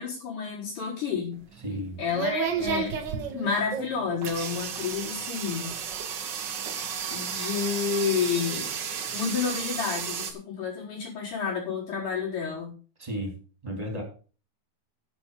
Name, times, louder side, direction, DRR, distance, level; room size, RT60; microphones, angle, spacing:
voice 1, 0.0-1.4 2.0-3.0 3.3-5.8 7.1-8.7 9.1-12.7, left 6 dB, 65° left, -5 dB, 5.9 m, -30 dB
sound 1, 1.3-10.3, right 7 dB, 75° right, 1.0 m, -32 dB
voice 2, 1.6-2.0 13.0-14.0, equal, 10° right, 2 dB, 3.5 m, -34 dB
10.5 x 7.4 x 5.7 m, 0.38 s
omnidirectional pair, 3.9 m